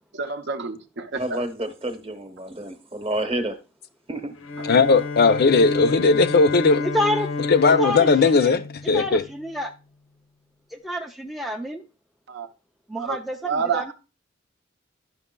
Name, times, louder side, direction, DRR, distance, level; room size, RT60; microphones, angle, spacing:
voice 1, 0.1-1.4 4.6-4.7 12.3-12.5 13.0-13.2 13.4-13.9, right 5 dB, 60° right, 0.6 m, -28 dB
voice 2, 1.2-3.6 4.1-4.3, right 1 dB, 30° right, 0.9 m, -29 dB
Bowed string instrument, 4.4-9.6, left 3 dB, 85° left, 0.8 m, -30 dB
voice 3, 4.7-6.8 7.5-9.2, left 4 dB, 50° left, 0.5 m, -18 dB
voice 4, 6.9-7.3 7.8-8.5 8.9-9.7 10.7-11.8 12.9-13.9, left 1 dB, ahead, 0.4 m, -28 dB
11.0 x 5.8 x 2.2 m
head